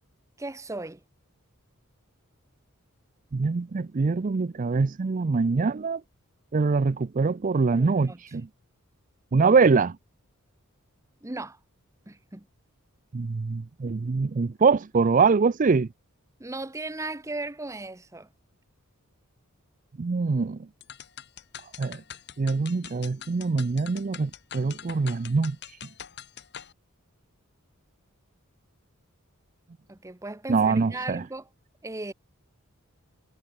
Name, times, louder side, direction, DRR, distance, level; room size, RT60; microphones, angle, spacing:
voice 1, 0.4-1.0 7.7-8.4 11.2-11.6 12.1-12.5 16.4-18.3 29.9-31.5 31.8-32.1, right 2 dB, 15° right, 0.8 m, -37 dB
voice 2, 3.3-6.0 6.5-8.5 9.3-10.0 13.1-15.9 20.0-20.6 21.8-22.0 22.4-25.6 30.5-31.2, right 4 dB, 35° right, 0.4 m, -24 dB
sound 1, 20.8-26.7, left 9 dB, 50° left, 1.5 m, -44 dB
head